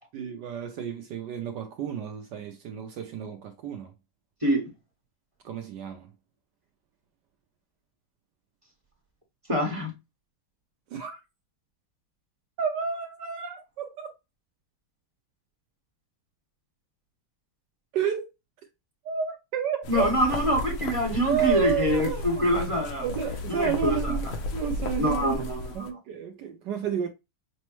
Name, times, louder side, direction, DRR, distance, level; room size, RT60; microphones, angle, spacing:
voice 1, 0.1-3.9 5.4-6.1 10.9-11.2 12.6-14.1 17.9-18.3 19.0-20.1 21.1-22.6 23.0-25.5 25.7-27.1, right 7 dB, 75° right, 1.0 m, -31 dB
voice 2, 9.5-9.9 19.9-23.0 23.5-24.2 25.0-25.9, equal, 25° right, 0.8 m, -25 dB
sound 1, 19.8-25.9, left 2 dB, 75° left, 1.5 m, -34 dB
6.1 x 2.1 x 3.0 m
omnidirectional pair, 2.3 m